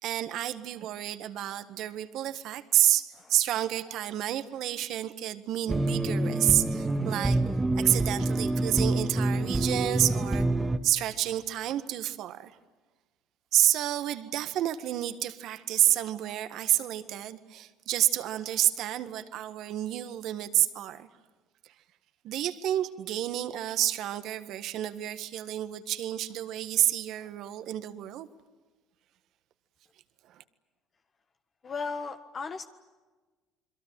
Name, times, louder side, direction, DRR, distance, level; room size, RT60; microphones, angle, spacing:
voice 1, 0.0-7.4 7.7-10.5 10.8-12.6 13.5-21.1 22.2-28.3 30.3-30.4, right 13 dB, 65° right, 11 dB, 1.7 m, -29 dB
sound 1, 5.7-10.8, right 2 dB, 15° right, 1.9 m, -27 dB
voice 2, 31.6-32.7, left 4 dB, 40° left, 7 dB, 1.4 m, -36 dB
28.5 x 22.5 x 9.2 m, 1.3 s
supercardioid pair, 80°, 0 cm